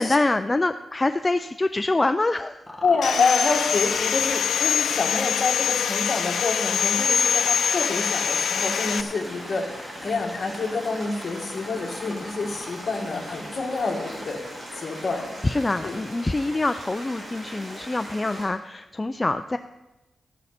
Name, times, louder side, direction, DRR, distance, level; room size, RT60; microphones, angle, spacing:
voice 1, 0.0-2.7 3.2-3.6 12.0-12.3 15.4-19.6, left 2 dB, 20° left, 9 dB, 0.3 m, -25 dB
sound 1, 2.7-14.8 16.5-16.6, left 1 dB, ahead, 1.5 m, -41 dB
voice 2, 2.8-14.4 14.7-15.4 15.8-16.0, left 4 dB, 45° left, 1 dB, 1.9 m, -27 dB
Sawing, 3.0-9.0, left 7 dB, 85° left, 0.5 m, -24 dB
sound 2, 8.5-18.5, equal, 35° right, 5.3 m, -39 dB
13.5 x 11.0 x 4.2 m, 1.0 s
wide cardioid pair, 155°, 0 cm